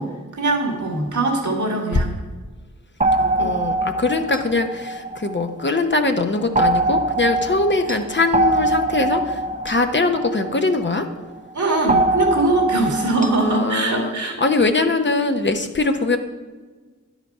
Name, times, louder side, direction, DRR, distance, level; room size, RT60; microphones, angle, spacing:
voice 1, 0.0-2.1 3.2-3.5 11.5-14.4, right 2 dB, 70° right, 1 dB, 2.0 m, -22 dB
sound 1, 3.0-5.8 6.6-11.1 11.9-13.7, right 2 dB, 25° right, 0.6 m, -23 dB
voice 2, 3.4-9.4 9.6-11.1 13.3-16.2, left 3 dB, 40° left, 6 dB, 0.8 m, -21 dB
10.5 x 5.0 x 5.5 m, 1.4 s
cardioid pair, 45°, 30 cm